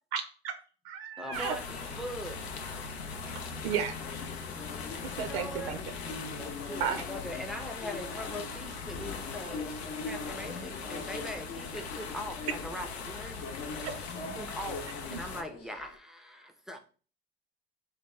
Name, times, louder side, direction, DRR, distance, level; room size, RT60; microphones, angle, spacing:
voice 1, 0.1-0.6 0.8-1.6 3.6-4.0 5.0-5.8 6.8-7.0 13.8-14.0 15.1-15.2, right 7 dB, 70° right, 0.5 m, -33 dB
voice 2, 1.2-2.5 5.1-5.8 6.3-13.5 14.3-16.8, equal, ahead, 0.4 m, -41 dB
sound 1, 1.3-15.4, left 5 dB, 85° left, 0.5 m, -40 dB
sound 2, 1.9-16.0, left 3 dB, 50° left, 0.8 m, -44 dB
voice 3, 10.4-10.9 14.0-14.6, left 2 dB, 20° left, 0.9 m, -47 dB
3.4 x 2.3 x 3.1 m
hypercardioid pair, 65°, 31 cm